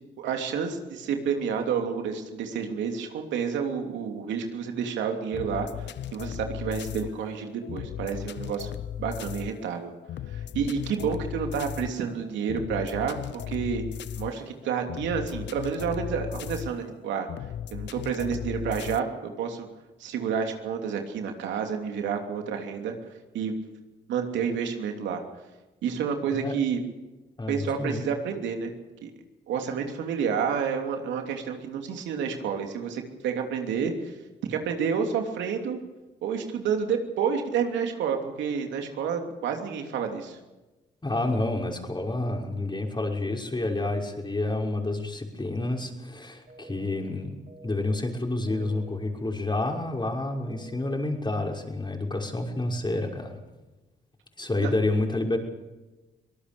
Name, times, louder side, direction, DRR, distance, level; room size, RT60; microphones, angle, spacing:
voice 1, 0.2-8.7 9.0-9.9 10.3-13.8 14.2-17.3 17.7-19.7 20.0-22.9 23.3-23.5 24.1-25.2 25.8-26.8 27.5-28.7 29.0-29.1 29.5-34.1 34.5-35.8 36.2-40.4 54.6-54.7, right 6 dB, 85° right, 4 dB, 3.0 m, -29 dB
sound 1, 5.3-19.0, left 10 dB, 75° left, 0.8 m, -36 dB
voice 2, 27.4-28.0 41.0-47.3 47.6-53.4 54.4-55.4, left 2 dB, 25° left, 1 dB, 5.9 m, -29 dB
sound 2, 46.5-47.0 47.5-48.0 48.5-49.0 49.5-50.0 50.5-51.0, right 4 dB, 45° right, 7.2 m, -48 dB
24.5 x 19.0 x 7.0 m, 1.1 s
supercardioid pair, 55°, 19 cm